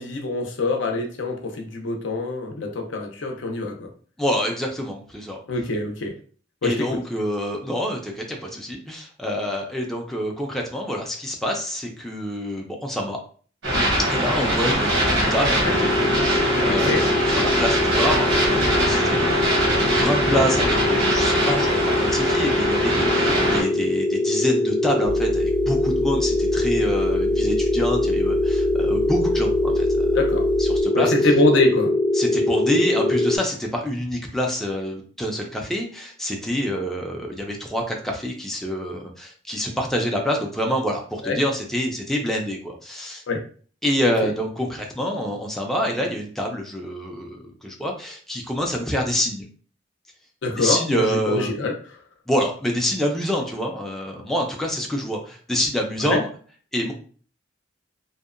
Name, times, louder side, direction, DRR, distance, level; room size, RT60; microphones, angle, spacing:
voice 1, 0.0-3.9 5.5-6.1 6.6-7.0 15.6-15.7 16.7-17.0 30.1-30.4 30.9-31.9 41.2-41.4 43.3-43.4 44.2-44.3 50.4-51.7 56.0-56.2, left 2 dB, 75° left, 3 dB, 0.6 m, -24 dB
voice 2, 4.2-5.4 6.6-13.2 14.1-30.2 30.6-31.1 32.1-43.2 43.8-49.5 50.6-51.5 52.3-56.3 56.7-56.9, equal, ahead, 0 dB, 0.4 m, -27 dB
sound 1, 13.6-23.6, right 1 dB, 80° right, 0.9 m, -22 dB
sound 2, 15.7-33.4, left 2 dB, 40° left, 0.7 m, -23 dB
sound 3, 25.0-30.8, left 1 dB, 65° right, 0.6 m, -32 dB
2.7 x 2.1 x 2.4 m, 0.43 s
head